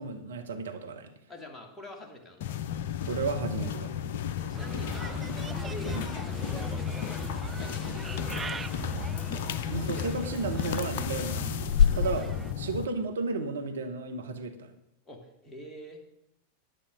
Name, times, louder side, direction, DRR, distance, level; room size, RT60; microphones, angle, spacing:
voice 1, 0.0-1.1 3.0-4.0 5.9-6.0 9.7-11.7 12.0-12.3 12.6-14.7, right 4 dB, 65° right, 7 dB, 1.0 m, -33 dB
voice 2, 1.3-2.6 4.4-8.7 9.6-10.5 12.2-12.6 15.1-16.0, left 1 dB, 15° left, 1 dB, 2.5 m, -46 dB
sound 1, 2.4-12.9, left 9 dB, 55° left, 0.6 m, -31 dB
Bird, 4.5-12.5, right 5 dB, 15° right, 0.4 m, -40 dB
10.0 x 9.9 x 6.4 m, 0.86 s
figure-of-eight pair, 90°, 0 cm